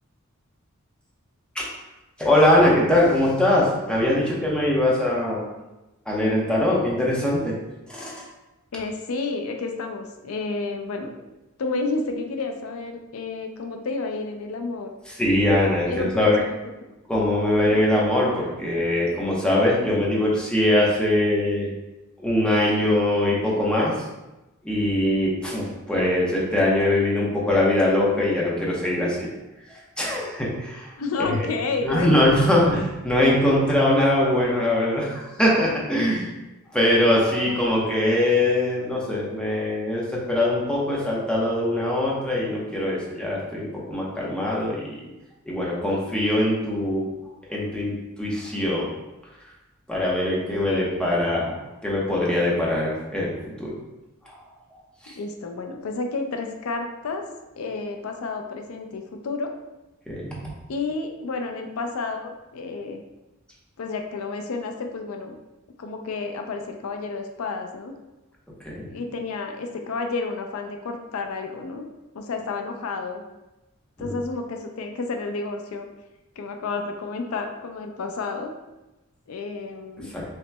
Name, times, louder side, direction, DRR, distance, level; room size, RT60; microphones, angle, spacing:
voice 1, 2.2-5.5 6.1-7.6 7.9-8.1 15.1-16.3 17.1-21.7 22.2-23.9 24.6-29.2 30.0-30.9 31.2-31.5 31.8-36.3 36.7-44.9 45.5-47.1 47.5-48.9 49.9-53.7 54.2-54.4 55.0-55.1 60.1-60.4 68.6-68.9 74.0-74.1 80.1-80.2, left 1 dB, 5° left, -5 dB, 0.8 m, -22 dB
voice 2, 8.7-11.1 11.6-14.9 15.9-16.6 16.9-17.0 17.6-17.8 31.0-32.3 37.1-37.7 50.3-51.1 55.2-57.2 57.6-59.5 60.7-63.0 63.8-65.4 65.8-67.9 68.9-71.9 72.1-73.2 74.0-75.9 76.4-78.5 79.3-80.1, left 3 dB, 85° left, 4 dB, 0.4 m, -31 dB
5.6 x 3.0 x 2.2 m, 1.0 s
head